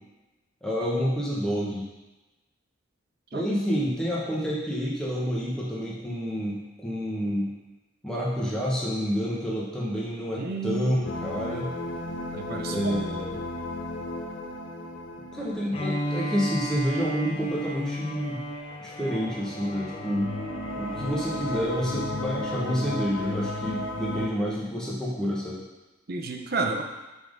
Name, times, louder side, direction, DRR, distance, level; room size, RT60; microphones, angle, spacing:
voice 1, 0.6-1.9 3.3-7.5 8.0-11.7 12.7-13.4 15.3-18.4 18.8-20.3 20.7-25.6, equal, 5° left, -6 dB, 1.0 m, -29 dB
voice 2, 10.4-11.1 12.3-13.0 26.1-26.8, right 3 dB, 50° right, 3 dB, 0.6 m, -31 dB
sound 1, 11.0-17.1 19.9-24.3, left 1 dB, 70° left, 0.6 m, -34 dB
Bowed string instrument, 15.7-21.7, equal, 30° left, 0.6 m, -34 dB
5.7 x 3.7 x 5.1 m, 1.1 s
head